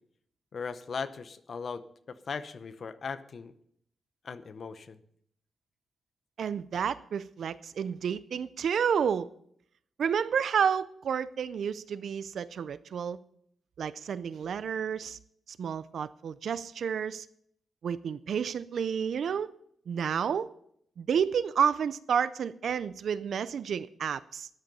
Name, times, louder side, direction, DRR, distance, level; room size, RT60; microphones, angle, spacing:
voice 1, 0.5-1.8 2.1-3.5 4.2-5.0, left 5 dB, 45° left, 11 dB, 0.8 m, -38 dB
voice 2, 6.4-9.3 10.0-13.2 13.8-15.2 15.5-17.3 17.8-19.5 19.9-20.5 21.0-24.5, right 7 dB, 60° right, 16 dB, 0.4 m, -30 dB
13.0 x 10.5 x 5.4 m, 0.68 s
wide cardioid pair, 170°, 0 cm